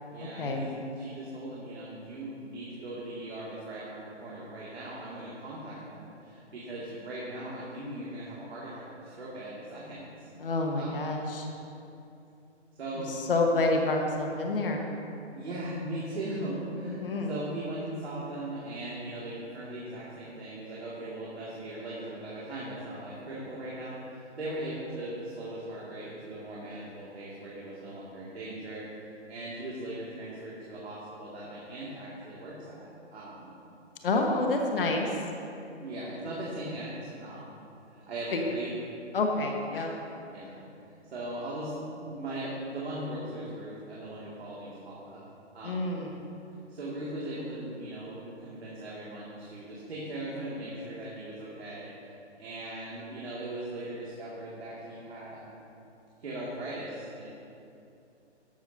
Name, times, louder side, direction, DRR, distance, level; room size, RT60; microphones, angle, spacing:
voice 1, 0.1-10.3 10.7-11.1 12.8-13.2 15.3-33.5 35.8-37.6 37.9-38.7 39.7-39.8 40.3-40.6 41.1-45.2 45.5-45.9 46.7-55.6 56.2-57.3, right 1 dB, 60° right, -7 dB, 2.6 m, -39 dB
voice 2, 10.4-11.5 13.3-14.9 16.8-17.3 34.0-35.1 38.3-38.5 39.1-39.9 45.6-46.2, left 2 dB, 50° left, 2 dB, 1.5 m, -28 dB
13.0 x 11.5 x 2.9 m, 2.7 s
hypercardioid pair, 155°, 36 cm